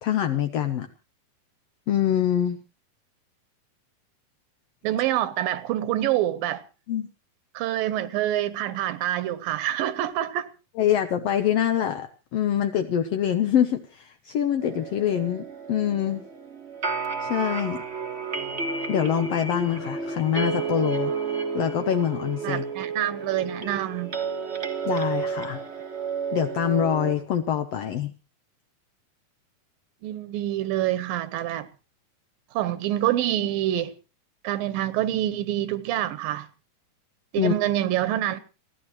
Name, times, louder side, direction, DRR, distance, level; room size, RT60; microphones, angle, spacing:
voice 1, 0.0-0.9 1.9-2.6 6.9-7.1 10.8-16.2 17.2-17.8 18.9-21.1 21.5-22.6 24.8-25.6 26.3-28.1 37.4-37.6, left 10 dB, 85° left, 1.4 m, -25 dB
voice 2, 4.8-6.6 7.5-10.5 22.4-24.2 30.0-31.7 32.5-33.9 34.4-36.5 37.3-38.4, right 13 dB, 80° right, 2.6 m, -26 dB
sound 1, 14.6-27.1, right 5 dB, 50° right, 0.7 m, -31 dB
30.0 x 11.5 x 3.1 m
omnidirectional pair, 4.1 m